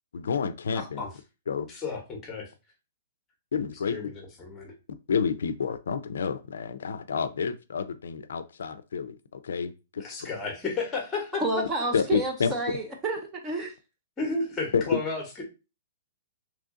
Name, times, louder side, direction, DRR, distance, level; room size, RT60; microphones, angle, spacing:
voice 1, 0.1-1.0 1.5-1.7 3.5-4.1 5.1-10.3 11.9-12.8 14.7-15.0, left 6 dB, 80° left, 0.4 m, -29 dB
voice 2, 1.7-2.5 3.9-4.7 10.0-11.4 14.2-15.4, left 3 dB, 10° left, 0.8 m, -32 dB
voice 3, 11.4-13.7, right 2 dB, 15° right, 0.4 m, -30 dB
3.0 x 2.5 x 3.6 m
hypercardioid pair, 175°, 0 cm